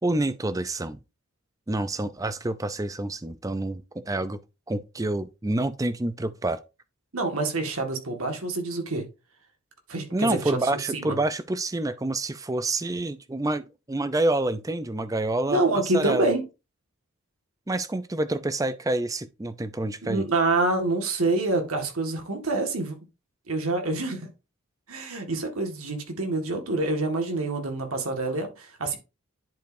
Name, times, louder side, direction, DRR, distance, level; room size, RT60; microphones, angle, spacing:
voice 1, 0.0-1.0 1.7-4.4 4.7-6.6 10.1-16.3 17.7-20.3, right 2 dB, 15° right, 0.5 m, -28 dB
voice 2, 7.1-9.1 9.9-10.6 10.9-11.2 15.5-16.4 20.0-23.0 23.5-24.3 24.9-29.0, right 2 dB, 70° right, 1.8 m, -26 dB
10.5 x 5.0 x 2.7 m
head